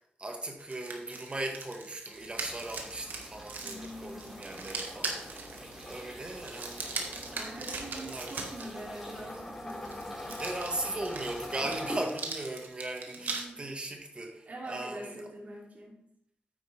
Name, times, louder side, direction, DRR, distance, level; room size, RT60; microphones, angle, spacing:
voice 1, 0.2-5.5 5.8-7.0 7.9-8.3 10.4-15.2, right 2 dB, 35° right, 3 dB, 1.5 m, -38 dB
sound 1, 0.6-8.7 9.7-13.4, right 4 dB, 80° right, 1.6 m, -40 dB
sound 2, 2.1-12.0, equal, 10° right, 4.5 m, -46 dB
voice 2, 3.6-4.4 7.4-10.4 13.1-13.7 14.5-16.0, right 1 dB, 55° right, -2 dB, 2.7 m, -44 dB
sound 3, 4.3-12.6, left 2 dB, 30° left, 1.1 m, -45 dB
9.1 x 9.1 x 3.4 m, 0.70 s
wide cardioid pair, 85°, 3 cm